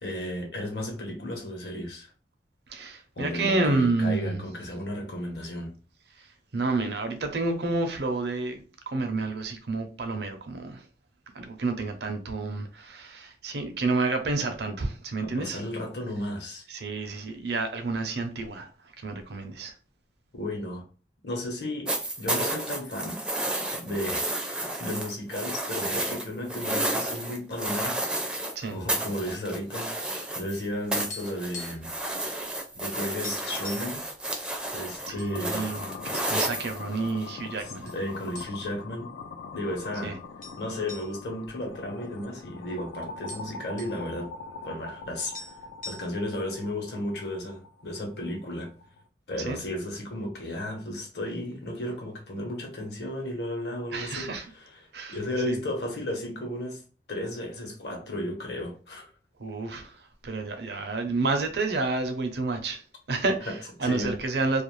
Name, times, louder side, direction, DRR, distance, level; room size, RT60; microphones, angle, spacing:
voice 1, 0.0-2.1 3.2-5.8 15.2-16.6 20.3-20.8 21.2-23.2 23.7-28.0 28.6-32.0 32.7-34.1 34.7-35.7 37.8-39.1 39.5-40.2 40.6-44.3 44.6-45.5 45.9-48.7 49.3-54.8 55.1-56.8 57.1-59.1 63.5-63.6 63.8-64.2, left 1 dB, 65° left, 0.9 m, -34 dB
voice 2, 2.7-4.4 6.2-10.9 11.3-15.6 16.7-18.7 19.0-19.7 28.6-28.8 35.1-37.9 40.0-40.2 49.5-49.6 53.9-54.5 54.9-55.2 55.5-55.6 59.4-64.6, right 3 dB, 65° right, 0.6 m, -30 dB
sound 1, 21.9-28.5 28.9-30.6 30.9-37.2 38.4-38.5, right 1 dB, 5° right, 0.4 m, -31 dB
sound 2, 31.1-32.4 32.8-32.9 33.2-34.0 34.7-35.3 35.7-35.8 36.5-37.2 37.9-38.0 38.4-38.9 39.2-39.3 40.4-42.5 42.8-42.9 43.1-44.0 45.0-45.1 45.3-46.4, left 3 dB, 45° left, 0.7 m, -43 dB
sound 3, 35.1-49.1, left 4 dB, 85° left, 0.3 m, -43 dB
2.4 x 2.3 x 3.1 m
head